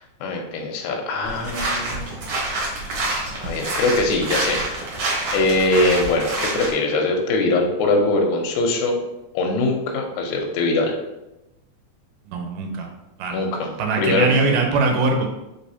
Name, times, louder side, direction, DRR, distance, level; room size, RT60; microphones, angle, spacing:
voice 1, 0.2-2.1 3.4-4.6 5.3-9.0 9.3-10.9 13.3-13.7 14.0-14.3, left 2 dB, 80° left, 1 dB, 1.8 m, -22 dB
sound 1, 1.2-6.7, right 2 dB, 65° right, 2.0 m, -27 dB
voice 2, 12.3-12.9 13.2-13.4 13.8-15.3, right 3 dB, 90° right, 2 dB, 2.2 m, -21 dB
4.7 x 3.3 x 2.7 m, 0.94 s
omnidirectional pair, 3.6 m